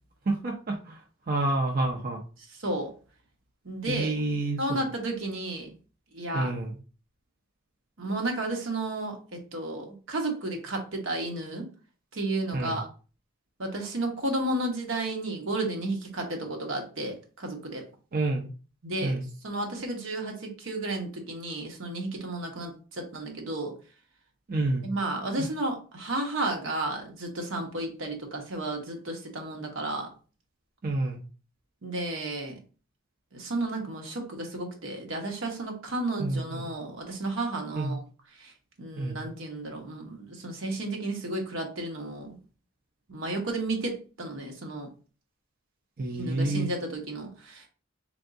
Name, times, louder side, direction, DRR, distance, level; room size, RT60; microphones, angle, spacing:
voice 1, 0.3-1.0 1.3-2.2 3.9-4.8 6.3-6.8 12.5-12.8 18.1-18.5 19.0-19.3 24.5-24.9 25.4-25.5 30.8-31.2 36.2-36.7 37.7-38.0 39.0-39.2 46.0-46.7, right 2 dB, 45° right, 1 dB, 0.5 m, -29 dB
voice 2, 3.6-4.1 4.6-5.7 6.1-6.5 8.0-11.6 12.1-12.9 13.6-17.8 18.8-23.7 24.8-30.1 31.8-32.5 33.3-38.0 38.4-38.5 38.8-42.4 43.1-44.9 46.1-47.7, right 2 dB, 75° right, 2 dB, 1.0 m, -32 dB
3.8 x 3.5 x 2.6 m, 0.36 s
head